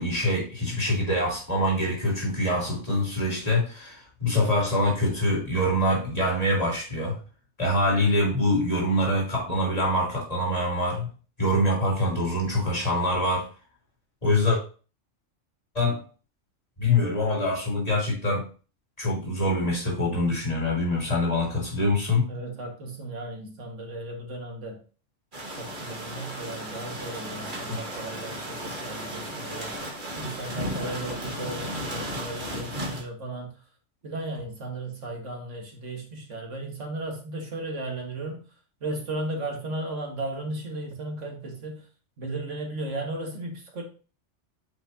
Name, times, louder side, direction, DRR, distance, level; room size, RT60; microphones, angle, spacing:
voice 1, 0.0-7.2 7.6-11.1 11.4-13.5 14.2-14.6 15.7-16.0 16.8-18.4 19.0-22.3 27.7-27.8, left 1 dB, 30° left, -3 dB, 3.1 m, -24 dB
voice 2, 22.3-24.8 25.5-33.6 34.0-38.4 38.8-41.9 42.2-43.8, right 2 dB, 85° right, 1 dB, 2.1 m, -35 dB
sound 1, 25.3-33.0, right 1 dB, 45° right, 1.8 m, -35 dB
8.8 x 5.9 x 2.8 m, 0.36 s
omnidirectional pair, 1.2 m